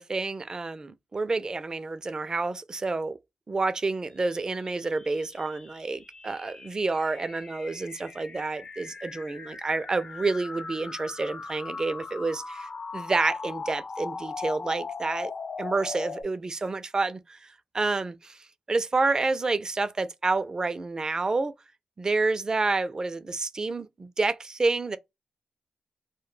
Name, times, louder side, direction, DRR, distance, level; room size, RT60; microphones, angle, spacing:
voice 1, 0.0-3.2 3.5-15.3 15.6-21.5 22.0-25.0, right 3 dB, 35° right, 0.4 m, -29 dB
sound 1, 4.3-16.2, left 4 dB, 45° left, 0.4 m, -39 dB
2.2 x 2.1 x 3.1 m
cardioid pair, 80°, 2 cm